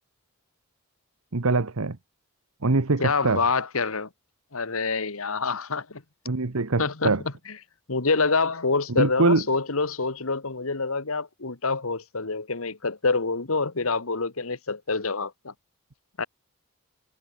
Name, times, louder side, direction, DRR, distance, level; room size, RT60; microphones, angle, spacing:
voice 1, 1.3-2.0 2.6-3.4 6.3-7.2 8.9-9.4, right 3 dB, 75° right, 1.1 m, -23 dB
voice 2, 3.0-4.1 4.5-6.0 6.8-7.2 7.5-7.6 7.9-15.5 16.2-16.3, left 4 dB, 70° left, 1.6 m, -26 dB
head